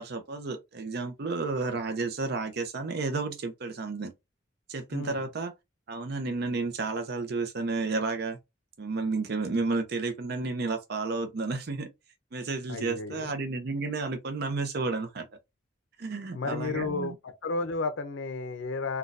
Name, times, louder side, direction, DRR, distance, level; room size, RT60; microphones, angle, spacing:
voice 1, 0.0-4.1 4.7-5.5 5.9-8.4 8.8-11.9 12.3-15.3 16.0-17.2, right 3 dB, 55° right, 0.5 m, -31 dB
voice 2, 12.7-13.3 16.3-19.0, left 3 dB, 80° left, 0.6 m, -32 dB
3.9 x 2.2 x 2.5 m
head